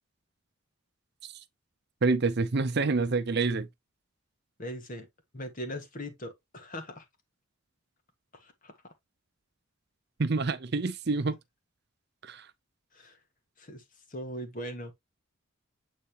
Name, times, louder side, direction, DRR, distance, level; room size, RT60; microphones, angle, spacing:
voice 1, 2.0-3.7 10.2-11.4 12.2-12.5, right 3 dB, 50° right, 0.6 m, -27 dB
voice 2, 4.6-5.1 5.3-7.0 8.3-8.7 12.9-13.2 13.6-13.8 14.1-14.9, equal, 40° left, 1.7 m, -40 dB
8.8 x 4.1 x 2.9 m
head